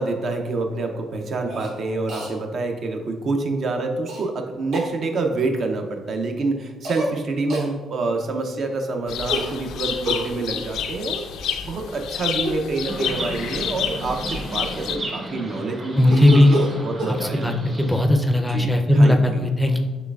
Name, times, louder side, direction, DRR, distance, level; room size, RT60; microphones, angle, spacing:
voice 1, 0.0-11.2 11.6-17.5 18.5-19.5, right 3 dB, 55° right, 4 dB, 0.5 m, -27 dB
Cough, 1.5-1.7 2.1-2.3 4.1-4.2 4.7-4.9 6.8-7.1 7.5-7.7 9.3-10.3 12.3-12.7 13.0-13.3 13.9-14.0 14.3-15.3 16.1-17.2, right 1 dB, 90° right, 1.2 m, -29 dB
sound 1, 9.1-15.0, left 8 dB, 80° left, 0.3 m, -29 dB
Chirp tweet, 12.9-18.1, right 1 dB, 40° right, 0.9 m, -34 dB
voice 2, 16.0-16.6 17.1-19.8, left 1 dB, 5° left, 4 dB, 0.4 m, -17 dB
5.9 x 3.2 x 2.3 m, 1.3 s
cardioid pair, 90°, 0 cm